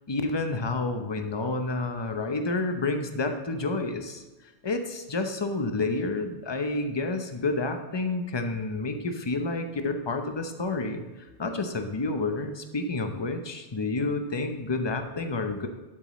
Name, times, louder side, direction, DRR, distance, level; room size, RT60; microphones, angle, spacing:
voice 1, 0.1-4.2 4.6-11.0 11.4-15.7, left 3 dB, 25° left, 6 dB, 0.7 m, -29 dB
12.0 x 7.5 x 3.1 m, 1.2 s
omnidirectional pair, 1.2 m